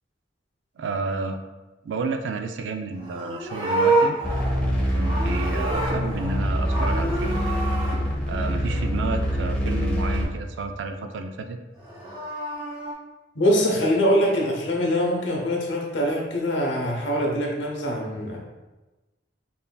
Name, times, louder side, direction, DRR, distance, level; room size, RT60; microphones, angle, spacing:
voice 1, 0.8-1.4 1.8-4.2 4.9-7.4 8.3-11.6, right 3 dB, 75° right, 6 dB, 0.4 m, -31 dB
Livestock farm animals working animals, 3.0-6.4 6.7-8.0 11.7-12.9, right 2 dB, 25° right, 1.0 m, -27 dB
sound 1, 4.2-10.2, equal, 5° left, 0.8 m, -25 dB
voice 2, 13.3-18.4, equal, 75° left, -1 dB, 0.9 m, -23 dB
5.4 x 2.6 x 2.2 m, 1.1 s
head